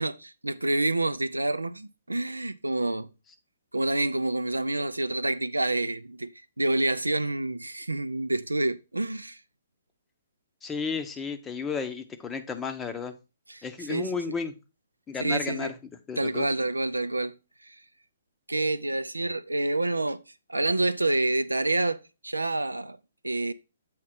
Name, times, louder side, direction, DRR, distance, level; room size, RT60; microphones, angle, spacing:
voice 1, 0.0-3.1 3.7-6.3 6.6-9.4 13.5-14.1 15.2-15.7 16.2-17.3 17.6-17.8 18.5-20.2 20.5-23.0 23.2-23.5, right 2 dB, 80° right, 0.4 m, -28 dB
voice 2, 10.6-13.1 13.6-14.5 15.1-15.7 16.1-16.5, left 5 dB, 10° left, 0.7 m, -33 dB
7.5 x 4.1 x 4.2 m
figure-of-eight pair, 130°, 0 cm